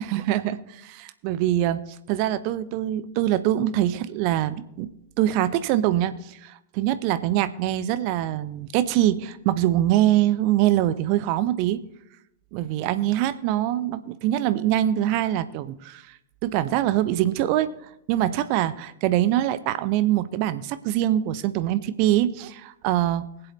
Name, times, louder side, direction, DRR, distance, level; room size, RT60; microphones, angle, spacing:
voice 1, 0.0-1.8 2.1-4.9 5.2-11.8 12.5-16.0 16.4-17.7 18.1-23.2, right 13 dB, 45° right, 14 dB, 0.6 m, -23 dB
21.5 x 7.8 x 3.1 m, 0.80 s
figure-of-eight pair, 90°, 0 cm